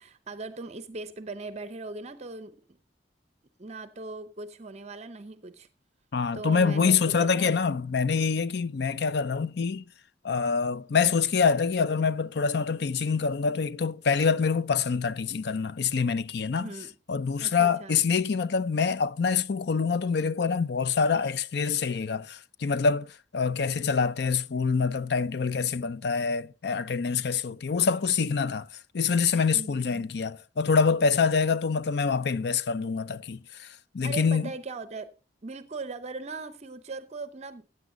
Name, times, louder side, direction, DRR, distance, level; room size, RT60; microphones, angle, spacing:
voice 1, 0.0-2.8 3.6-5.7 6.3-7.5 16.6-16.9 17.4-18.0 29.5-30.1 34.0-35.1 35.4-37.7, right 3 dB, 40° right, 0.6 m, -39 dB
voice 2, 6.1-9.8 10.2-16.7 17.1-28.7 28.9-33.4 33.9-34.5, left 5 dB, 65° left, 0.5 m, -26 dB
15.5 x 8.3 x 3.8 m
head